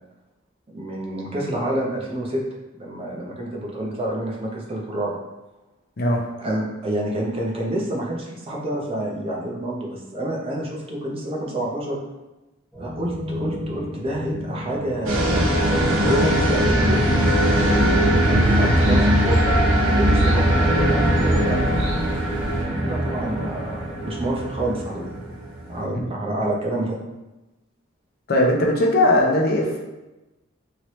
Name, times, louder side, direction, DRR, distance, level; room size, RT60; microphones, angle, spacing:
voice 1, 0.7-2.4 2.7-5.2 6.4-12.0 12.8-17.0 17.9-19.6 19.9-21.8 22.8-25.3 25.7-27.0, right 1 dB, 25° right, -2 dB, 0.6 m, -28 dB
sound 1, 12.7-18.4, left 1 dB, 5° left, 0.7 m, -33 dB
sound 2, 15.1-25.9, equal, 80° right, 0.7 m, -20 dB
sound 3, 17.6-22.6, equal, 60° right, 0.9 m, -30 dB
voice 2, 28.3-29.8, left 1 dB, 50° left, 0 dB, 0.5 m, -19 dB
3.1 x 2.8 x 3.0 m, 1.0 s
head